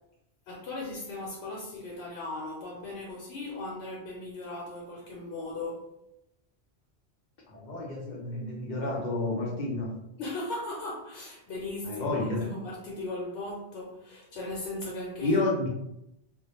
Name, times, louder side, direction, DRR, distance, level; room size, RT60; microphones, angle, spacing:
voice 1, 0.5-5.9 10.2-15.4, left 2 dB, 85° left, -3 dB, 0.9 m, -37 dB
voice 2, 7.5-9.9 11.8-12.4 15.2-15.7, left 2 dB, 55° left, -2 dB, 0.6 m, -30 dB
2.1 x 2.0 x 2.9 m, 0.84 s
omnidirectional pair, 1.1 m